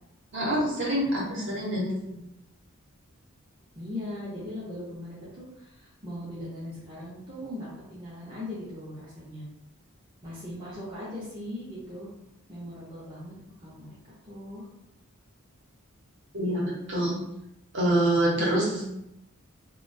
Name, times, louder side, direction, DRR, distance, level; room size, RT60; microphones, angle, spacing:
voice 1, 0.3-2.2 16.3-17.2 17.7-18.6, right 1 dB, 55° right, -5 dB, 0.8 m, -26 dB
voice 2, 1.3-2.1 3.8-9.5 10.2-12.1 12.5-14.7 18.3-18.8, left 1 dB, 20° right, -8 dB, 0.5 m, -39 dB
2.3 x 2.2 x 2.5 m, 0.85 s
head